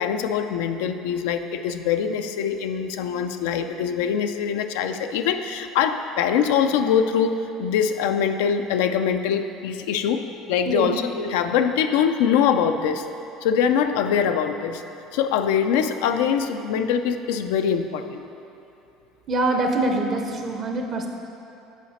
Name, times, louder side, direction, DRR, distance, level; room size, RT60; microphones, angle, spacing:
voice 1, 0.0-13.1 13.4-14.8 15.1-18.2, left 7 dB, 90° left, 7 dB, 0.3 m, -23 dB
voice 2, 19.3-21.1, right 2 dB, 45° right, 3 dB, 0.6 m, -24 dB
8.1 x 4.8 x 4.2 m, 2.9 s
supercardioid pair, 115°, 0 cm